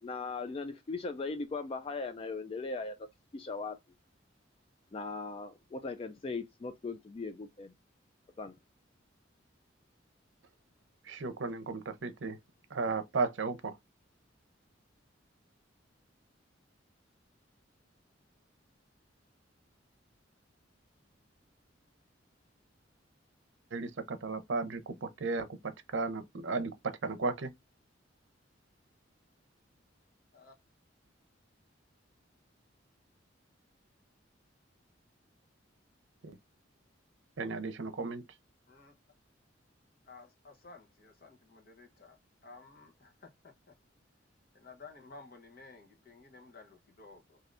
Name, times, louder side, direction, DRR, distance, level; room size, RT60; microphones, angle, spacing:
voice 1, 0.0-3.0 3.3-3.8 4.9-7.7 8.4-8.5, left 3 dB, 30° left, 0.3 m, -38 dB
voice 2, 11.0-12.4 12.7-13.8 23.7-27.5 36.2-36.4 37.4-38.2, right 4 dB, 75° right, 0.6 m, -35 dB
voice 3, 40.1-42.2 42.4-43.7 44.5-47.4, left 4 dB, 50° left, 0.9 m, -54 dB
3.3 x 2.7 x 2.5 m
head